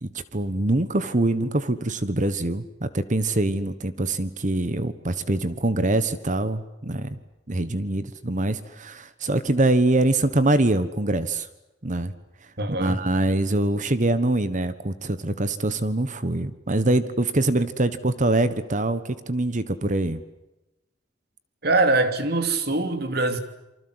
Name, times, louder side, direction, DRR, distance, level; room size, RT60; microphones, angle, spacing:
voice 1, 0.0-7.2 7.5-11.5 11.8-12.1 12.7-20.2, right 2 dB, 45° right, 1.3 m, -24 dB
voice 2, 12.6-13.0 21.6-23.4, right 2 dB, 60° right, 2.9 m, -23 dB
28.0 x 25.0 x 8.0 m
head